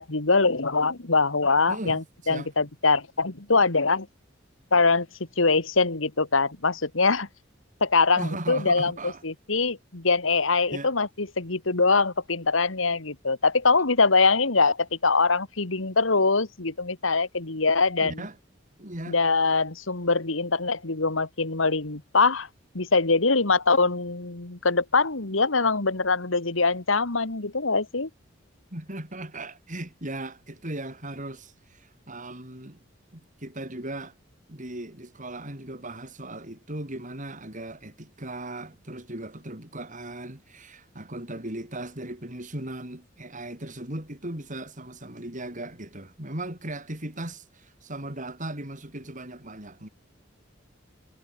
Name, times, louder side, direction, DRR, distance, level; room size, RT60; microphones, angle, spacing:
voice 1, 0.0-4.1 4.7-5.1 5.4-7.3 7.8-18.2 19.1-22.5 22.7-28.1, left 4 dB, 80° left, 2.1 m, -23 dB
voice 2, 1.7-2.5 8.2-9.2 10.7-10.9 18.0-18.3 18.8-19.2 28.7-32.8 33.1-34.1 34.5-49.9, right 1 dB, 40° right, 6.6 m, -37 dB
head